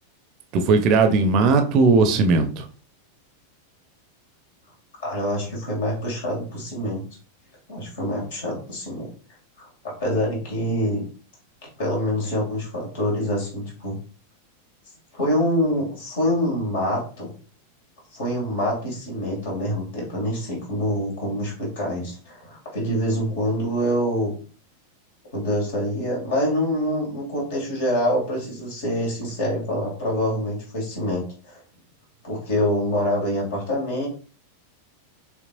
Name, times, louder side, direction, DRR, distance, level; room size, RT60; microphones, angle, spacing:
voice 1, 0.5-2.6, right 4 dB, 40° right, 7 dB, 0.7 m, -18 dB
voice 2, 5.0-7.0 7.7-9.1 9.6-11.1 11.6-14.0 15.1-17.3 18.1-24.4 25.3-31.6 32.2-34.1, equal, 55° left, -2 dB, 2.5 m, -25 dB
6.2 x 3.2 x 2.5 m, 0.40 s
figure-of-eight pair, 90°, 0 cm